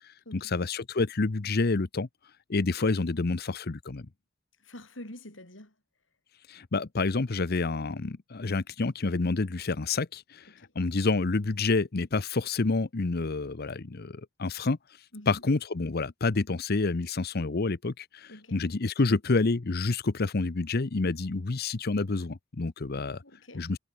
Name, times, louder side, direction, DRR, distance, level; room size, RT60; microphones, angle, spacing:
voice 1, 0.3-2.1 2.5-4.1 6.5-10.4 10.8-14.8 15.3-23.2 23.5-23.8, left 3 dB, 55° left, 0.8 m, -28 dB
voice 2, 4.6-5.7 10.5-10.7 15.1-15.4 18.3-18.6 23.2-23.7, left 1 dB, 70° left, 8.0 m, -47 dB
head